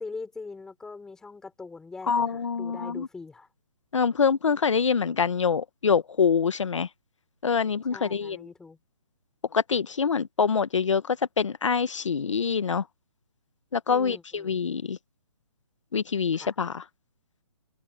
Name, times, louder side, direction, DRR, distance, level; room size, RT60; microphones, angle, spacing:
voice 1, 0.0-3.5 7.9-8.8 13.9-14.6 16.3-16.5, left 4 dB, 5° left, 4.8 m, -42 dB
voice 2, 2.1-3.1 3.9-6.9 7.4-8.4 9.5-12.8 13.7-15.0 15.9-16.8, left 6 dB, 75° left, 1.2 m, -25 dB
hypercardioid pair, 175°, 16 cm